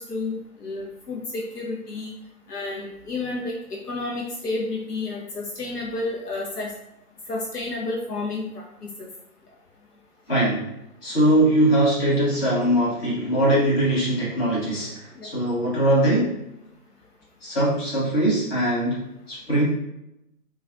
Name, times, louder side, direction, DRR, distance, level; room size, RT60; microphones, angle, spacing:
voice 1, 0.0-2.1 2.5-3.5 3.9-6.7 7.3-8.6 9.0-9.1 15.2-15.3, left 2 dB, 85° left, -2 dB, 0.7 m, -30 dB
voice 2, 10.3-10.7 11.0-16.4 17.4-19.6, right 1 dB, 40° left, -7 dB, 1.5 m, -21 dB
3.1 x 2.3 x 2.6 m, 0.87 s
figure-of-eight pair, 140°, 45 cm